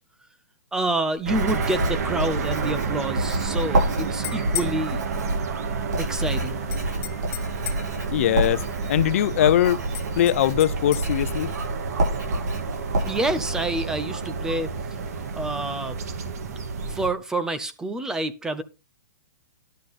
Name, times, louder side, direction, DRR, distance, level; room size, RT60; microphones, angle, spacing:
voice 1, 0.7-5.0 6.0-6.6 13.1-14.7 15.4-16.0 16.9-18.6, right 2 dB, 5° right, 0.6 m, -28 dB
Writing, 1.2-13.6, right 1 dB, 85° right, 7.3 m, -29 dB
sound 1, 1.3-17.1, right 5 dB, 60° right, 2.1 m, -30 dB
sound 2, 4.0-4.8 6.7-7.9 9.9-11.1, left 14 dB, 35° left, 1.5 m, -34 dB
voice 2, 8.1-8.6 8.9-9.9 10.2-11.5, left 11 dB, 50° left, 0.7 m, -21 dB
11.5 x 8.4 x 4.1 m
hypercardioid pair, 155°, 9 cm